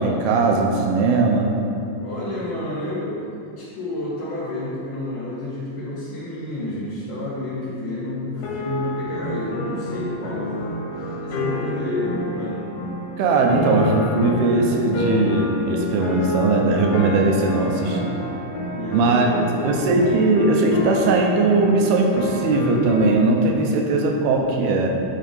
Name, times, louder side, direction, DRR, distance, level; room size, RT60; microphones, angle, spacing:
voice 1, 0.0-1.5 13.2-18.1 18.9-19.3 19.6-25.0, right 3 dB, 75° right, 2 dB, 2.5 m, -19 dB
voice 2, 2.0-10.7 10.9-12.7 18.7-19.8, left 2 dB, 60° left, -9 dB, 2.8 m, -30 dB
sound 1, 8.4-23.1, left 1 dB, 75° left, 3.0 m, -29 dB
10.0 x 3.7 x 5.3 m, 2.6 s
omnidirectional pair, 5.0 m